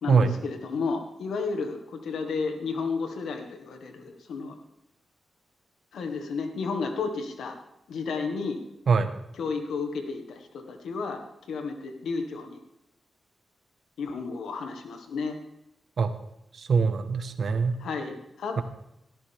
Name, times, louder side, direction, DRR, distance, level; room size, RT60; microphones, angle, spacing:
voice 1, 0.0-4.6 5.9-7.6 7.9-8.6 9.3-11.2 11.5-12.6 14.0-15.4 17.8-18.6, left 4 dB, 90° left, 5 dB, 1.8 m, -32 dB
voice 2, 16.6-17.8, right 5 dB, 70° right, 9 dB, 1.3 m, -23 dB
17.0 x 13.5 x 3.6 m, 0.82 s
cardioid pair, 55°, 0 cm